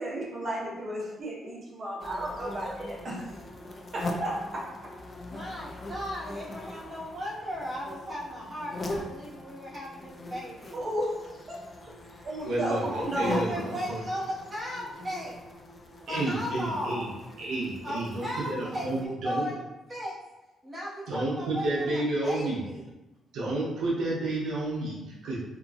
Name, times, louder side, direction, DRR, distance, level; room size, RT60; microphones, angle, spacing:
voice 1, 0.0-3.3 3.9-4.9 10.7-11.9 12.2-13.4, right 1 dB, 45° right, -5 dB, 0.8 m, -33 dB
sound 1, 2.0-19.1, left 2 dB, 35° left, 0.4 m, -41 dB
voice 2, 5.3-10.7 13.2-15.4 16.1-17.2 17.8-19.6 19.9-20.1 20.6-22.8, equal, 20° right, -8 dB, 1.1 m, -36 dB
voice 3, 12.4-14.0 16.1-17.1 17.4-19.5 21.1-22.6 23.3-25.4, right 2 dB, 80° right, -5 dB, 0.6 m, -30 dB
3.0 x 2.4 x 2.3 m, 1.0 s
cardioid pair, 90°, 0 cm